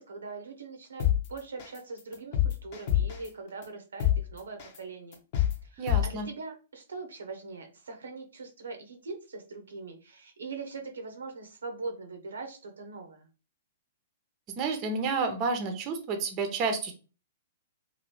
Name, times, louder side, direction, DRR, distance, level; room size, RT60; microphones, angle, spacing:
voice 1, 0.0-5.2 5.6-13.3, right 4 dB, 85° right, 5 dB, 0.7 m, -42 dB
sound 1, 1.0-1.2 1.6-1.8 2.1-3.3 3.6-3.7 4.0-4.2 4.6-4.8 5.1-5.5 5.9-6.0, left 12 dB, 50° left, 0.9 m, -24 dB
voice 2, 5.8-6.3 14.6-16.9, right 4 dB, 35° right, 6 dB, 0.7 m, -30 dB
2.8 x 2.7 x 3.1 m, 0.34 s
hypercardioid pair, 125°, 0 cm